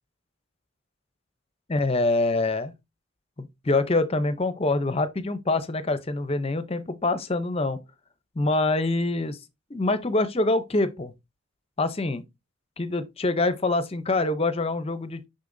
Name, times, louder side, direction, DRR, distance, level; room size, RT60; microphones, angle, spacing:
voice 1, 1.7-2.7 3.4-7.8 8.4-9.4 9.7-11.1 11.8-12.2 12.8-15.3, left 2 dB, 25° left, 0.6 m, -25 dB
6.8 x 5.6 x 2.6 m
head